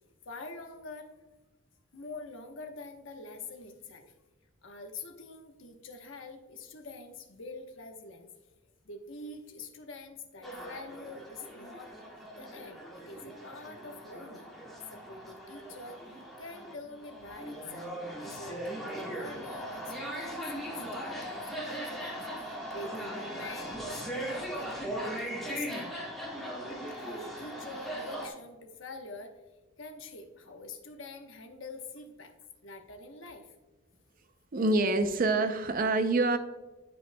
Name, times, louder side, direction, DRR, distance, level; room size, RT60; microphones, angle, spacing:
voice 1, 0.2-1.1 1.9-4.1 4.6-8.3 8.8-11.9 12.4-14.5 14.9-16.1 16.4-24.8 25.0-25.9 27.0-29.4 29.8-32.3 32.6-33.5, left 2 dB, 75° left, 5 dB, 1.0 m, -45 dB
sound 1, 10.4-28.3, equal, ahead, 1.4 m, -39 dB
voice 2, 34.5-36.4, right 2 dB, 45° right, 9 dB, 0.5 m, -26 dB
11.0 x 5.3 x 2.2 m, 1.2 s
head